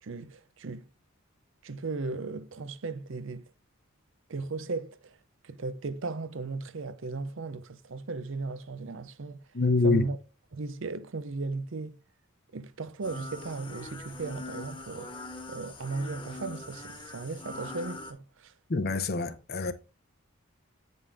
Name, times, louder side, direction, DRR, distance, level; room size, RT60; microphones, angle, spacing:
voice 1, 0.0-0.9 1.6-3.5 4.3-5.2 5.4-9.5 9.8-10.2 10.5-12.0 12.5-15.1 15.5-18.5, right 3 dB, 60° right, 0.6 m, -36 dB
voice 2, 9.5-10.1 18.7-19.7, left 3 dB, 45° left, 0.7 m, -25 dB
sound 1, 13.0-18.1, left 2 dB, 25° left, 1.3 m, -42 dB
8.4 x 5.5 x 3.5 m
head